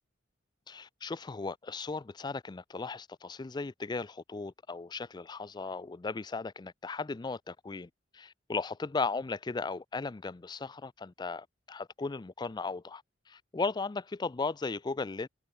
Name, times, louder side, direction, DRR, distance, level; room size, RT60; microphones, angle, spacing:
voice 1, 0.7-15.3, left 4 dB, 25° left, 0.4 m, -36 dB
head